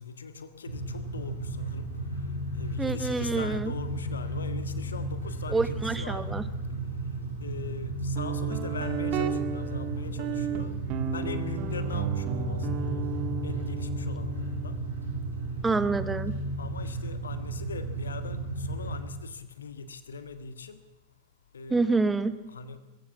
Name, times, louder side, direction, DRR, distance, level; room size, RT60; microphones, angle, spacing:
voice 1, 0.0-1.9 2.5-6.3 6.7-6.8 7.4-10.7 11.1-13.0 13.4-14.8 16.6-20.8 21.5-22.0 22.5-22.8, left 5 dB, 70° left, 11 dB, 1.7 m, -41 dB
sound 1, 0.6-19.0, right 1 dB, 80° right, 7.3 m, -34 dB
voice 2, 2.8-3.7 5.5-6.4 15.6-16.4 21.7-22.3, right 3 dB, 10° right, 14 dB, 1.4 m, -27 dB
Guitar, 8.2-17.6, right 8 dB, 40° right, 1.9 m, -35 dB
22.5 x 15.0 x 8.3 m, 1.1 s
figure-of-eight pair, 90°, 0 cm